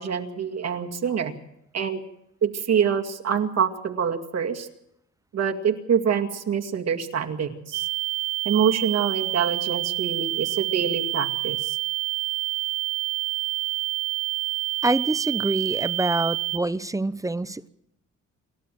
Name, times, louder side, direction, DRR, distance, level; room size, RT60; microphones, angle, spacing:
voice 1, 0.0-1.3 1.7-2.0 2.4-4.7 5.3-7.8 8.4-11.8, right 7 dB, 60° right, 2.3 m, -25 dB
sound 1, 7.7-16.6, right 20 dB, 80° right, 1.0 m, -28 dB
voice 2, 14.8-17.7, right 2 dB, 10° right, 0.7 m, -26 dB
28.5 x 12.5 x 7.7 m
cardioid pair, 90°, 30 cm